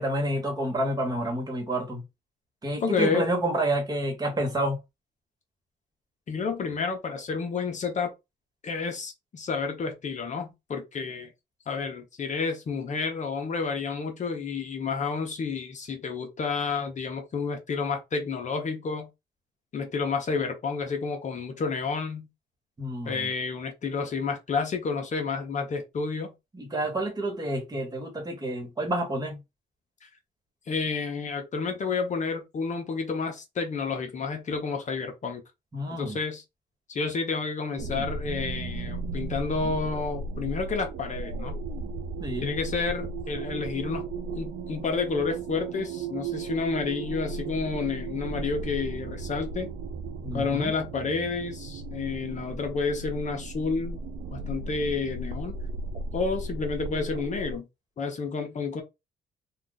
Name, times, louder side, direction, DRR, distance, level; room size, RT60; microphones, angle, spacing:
voice 1, 0.0-2.0 2.6-4.8 22.8-23.3 26.5-29.4 35.7-36.2 42.2-42.5 50.2-50.7, right 1 dB, 25° right, 1.2 m, -29 dB
voice 2, 2.8-3.2 6.3-8.1 8.6-11.3 11.7-19.1 19.7-22.3 23.0-26.3 30.0-30.1 30.7-35.4 35.9-36.4 36.9-41.6 42.4-44.1 44.4-49.7 50.3-54.0 54.3-55.6 56.1-57.7 58.0-58.8, left 4 dB, 45° left, 0.7 m, -30 dB
sound 1, 37.8-57.6, right 3 dB, 80° right, 0.5 m, -35 dB
2.4 x 2.3 x 3.9 m
cardioid pair, 110°, 17 cm